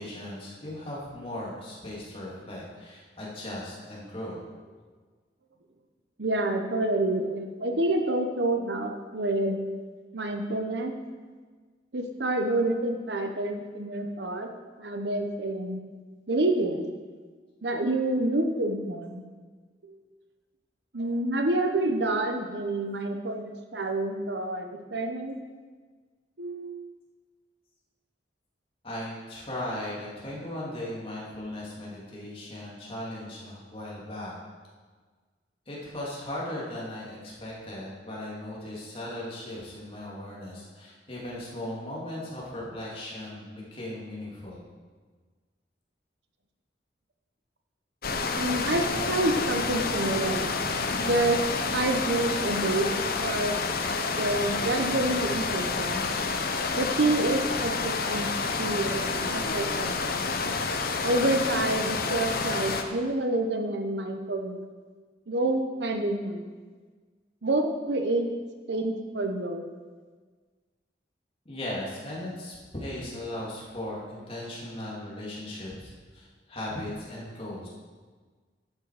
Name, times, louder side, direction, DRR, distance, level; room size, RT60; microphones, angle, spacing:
voice 1, 0.0-4.4 28.8-34.3 35.7-44.6 71.4-77.7, left 1 dB, 30° left, -5 dB, 2.8 m, -37 dB
voice 2, 6.2-9.6 10.1-10.9 11.9-14.5 14.8-15.8 16.3-16.8 17.6-19.2 19.8-20.0 20.9-25.4 26.4-26.8 48.4-50.5 51.0-51.4 51.7-53.6 54.2-56.0 56.7-58.3 58.6-60.5 61.0-64.7 65.3-66.5 67.4-68.3 68.7-69.6, right 2 dB, 70° right, 5 dB, 1.0 m, -28 dB
sound 1, 48.0-62.8, left 4 dB, 55° left, 0.8 m, -29 dB
11.5 x 7.6 x 5.0 m, 1.5 s
head